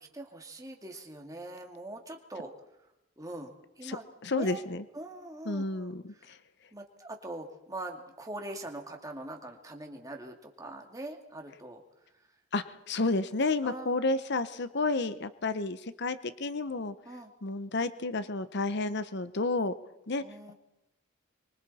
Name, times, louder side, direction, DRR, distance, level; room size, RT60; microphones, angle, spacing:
voice 1, 0.0-2.5 3.2-4.0 4.3-4.6 4.9-6.3 6.7-11.8 13.6-14.0 17.1-17.3 20.2-20.5, right 1 dB, 15° right, 2 dB, 2.4 m, -42 dB
voice 2, 4.2-4.8 5.5-6.4 12.5-17.0 17.4-19.7 20.1-20.2, left 3 dB, 55° left, 13 dB, 0.8 m, -31 dB
26.0 x 24.0 x 4.3 m, 0.92 s
head